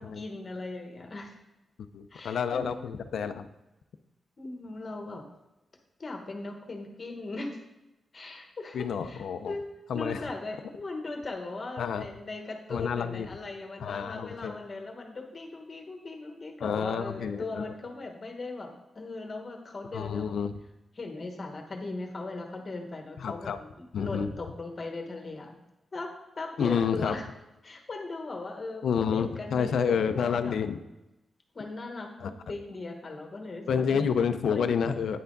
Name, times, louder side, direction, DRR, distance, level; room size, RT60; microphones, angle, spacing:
voice 1, 0.0-1.3 2.1-2.9 4.4-5.2 6.0-7.6 8.1-20.3 21.0-25.6 25.9-27.2 27.6-28.8 29.1-30.6 31.5-34.0 34.5-34.7, left 3 dB, 30° left, 3 dB, 1.2 m, -39 dB
voice 2, 1.9-3.5 8.7-9.5 9.9-10.3 11.8-12.1 12.7-13.3 13.8-14.5 16.6-17.7 19.9-20.5 23.2-23.6 23.9-24.3 26.6-27.2 28.8-30.8 32.2-32.3 33.7-35.2, left 7 dB, 75° left, 10 dB, 0.5 m, -29 dB
9.4 x 5.7 x 3.9 m, 0.95 s
wide cardioid pair, 170°, 0 cm